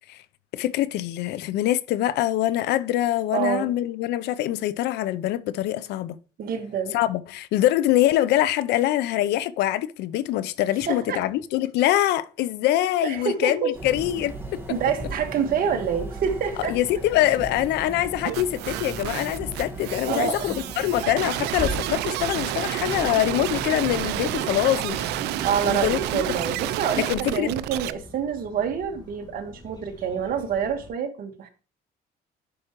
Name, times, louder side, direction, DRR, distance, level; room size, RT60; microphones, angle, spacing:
voice 1, 0.5-6.2 6.9-14.6 16.7-25.1 25.7-26.2 27.0-27.5, left 13 dB, 85° left, 0.6 m, -24 dB
voice 2, 3.3-3.7 6.4-7.0 10.9-11.2 13.0-13.7 14.7-16.7 20.1-20.5 25.4-31.5, right 7 dB, 60° right, 1.6 m, -27 dB
sound 1, 13.7-26.5, right 1 dB, 15° right, 1.7 m, -37 dB
sound 2, 18.2-27.9, right 15 dB, 85° right, 0.5 m, -30 dB
sound 3, 22.8-30.9, left 2 dB, 25° left, 2.1 m, -47 dB
11.0 x 4.9 x 3.0 m
cardioid pair, 110°, 17 cm